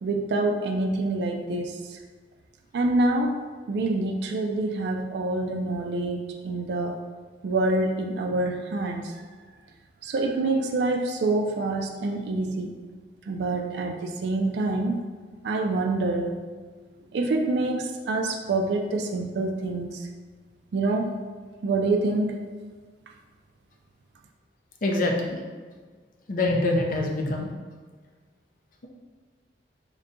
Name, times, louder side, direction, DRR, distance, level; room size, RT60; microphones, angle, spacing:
voice 1, 0.0-2.0 2.7-3.4 3.7-7.0 7.4-9.1 10.0-12.7 13.3-15.0 15.4-16.4 17.1-20.1 20.7-21.2 21.6-22.4, right 2 dB, 65° right, 2 dB, 0.4 m, -26 dB
voice 2, 24.8-25.4 26.3-27.5, left 2 dB, 50° left, 1 dB, 0.5 m, -25 dB
3.8 x 2.2 x 3.7 m, 1.5 s
head